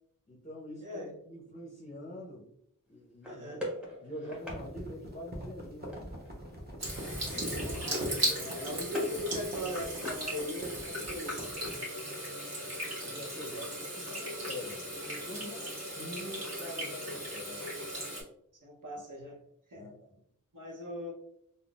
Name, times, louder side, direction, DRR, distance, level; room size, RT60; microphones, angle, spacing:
voice 1, 0.3-2.5 2.9-3.6 4.0-6.1 8.4-8.9 9.2-9.3 13.0-17.7 19.7-20.2, left 1 dB, 20° left, -4 dB, 0.6 m, -45 dB
voice 2, 0.8-1.1 3.3-3.6 6.9-11.8 18.6-19.4 19.7-19.9 20.5-21.1, left 1 dB, 70° right, 0 dB, 0.8 m, -40 dB
sound 1, 3.2-4.6 5.9-6.3 6.6-6.9 7.2-8.3 8.5-9.2 9.5-10.8, equal, 5° right, 1.0 m, -41 dB
sound 2, 4.4-11.8, equal, 30° right, 0.8 m, -42 dB
Water tap faucet / Sink (filling or washing), 6.8-18.2, right 1 dB, 50° right, 1.4 m, -37 dB
3.5 x 2.1 x 2.3 m, 0.72 s
wide cardioid pair, 60°, 33 cm